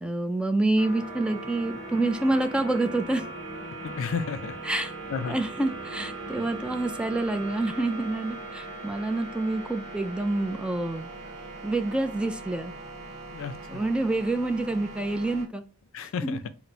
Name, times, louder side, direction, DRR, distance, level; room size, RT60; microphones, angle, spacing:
voice 1, 0.0-3.2 4.6-4.9 5.3-11.1 11.6-12.7 13.7-15.6 16.2-16.4, right 2 dB, 5° right, 0.3 m, -27 dB
sound 1, 0.8-15.5, right 3 dB, 30° right, 1.3 m, -39 dB
voice 2, 3.8-4.6 5.1-5.4 13.3-13.8 15.9-16.5, left 5 dB, 65° left, 0.4 m, -32 dB
4.1 x 2.0 x 4.4 m
head